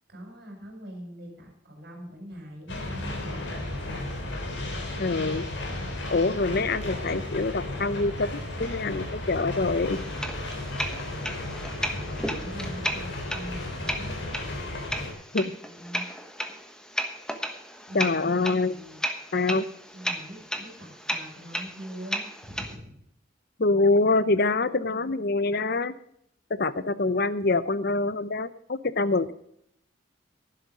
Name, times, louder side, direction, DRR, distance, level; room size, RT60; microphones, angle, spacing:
voice 1, 0.1-4.1 11.7-14.3 15.4-16.1 17.9-19.0 19.6-22.9, equal, 55° right, 0 dB, 5.0 m, -43 dB
sound 1, 2.7-15.1, left 1 dB, 70° left, 3.5 m, -34 dB
voice 2, 5.0-5.4 6.1-10.0 15.3-15.5 17.9-18.8 19.3-19.6 23.6-26.0 26.5-29.3, left 3 dB, 55° left, 15 dB, 0.8 m, -25 dB
sound 2, 9.9-22.7, equal, 5° left, 1.2 m, -35 dB
12.0 x 11.0 x 4.9 m, 0.70 s
head